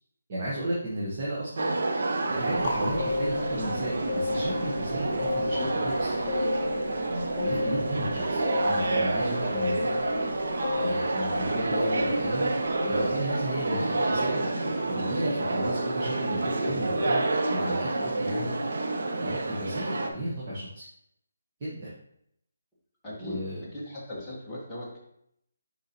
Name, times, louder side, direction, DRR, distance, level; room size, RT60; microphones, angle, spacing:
voice 1, 0.3-1.8 2.3-5.6 6.0-6.1 7.1-10.1 10.7-12.5 12.8-17.2 17.5-18.5 19.2-20.8 21.6-22.0 23.2-23.6, right 1 dB, 30° right, -7 dB, 1.3 m, -34 dB
sound 1, 1.6-20.1, right 2 dB, 60° right, 0.8 m, -29 dB
sound 2, 2.6-14.9, left 3 dB, 30° left, 0.8 m, -33 dB
voice 2, 16.6-17.0 23.0-25.0, left 1 dB, 5° left, -10 dB, 1.4 m, -38 dB
6.6 x 4.9 x 2.9 m, 0.72 s
hypercardioid pair, 170°, 0 cm